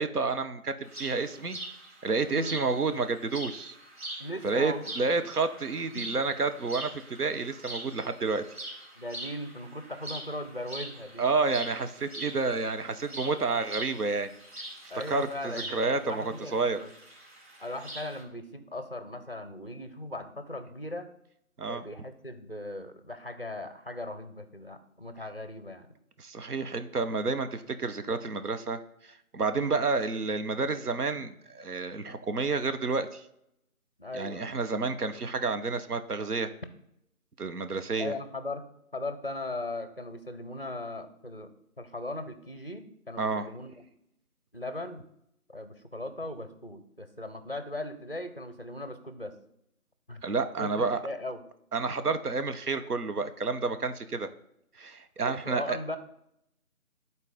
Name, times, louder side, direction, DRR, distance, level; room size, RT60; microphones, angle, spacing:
voice 1, 0.0-1.6 2.0-3.8 4.4-8.4 11.2-14.3 15.1-16.8 21.6-21.8 26.2-33.2 34.1-36.5 37.4-38.1 43.2-43.5 50.2-51.0 51.7-54.3 54.8-55.8, right 4 dB, 85° right, 9 dB, 0.9 m, -30 dB
sound 1, 0.8-18.2, right 1 dB, 45° right, 2.1 m, -43 dB
voice 2, 4.2-5.2 5.9-6.1 9.0-11.3 14.9-16.9 17.6-21.1 21.7-25.9 29.5-29.8 34.0-34.5 38.0-38.6 38.9-43.8 44.5-45.1 45.5-49.4 50.1-50.2 50.6-51.4 55.2-56.0, left 1 dB, 40° left, 10 dB, 0.5 m, -38 dB
10.5 x 4.0 x 3.6 m, 0.78 s
figure-of-eight pair, 165°, 45 cm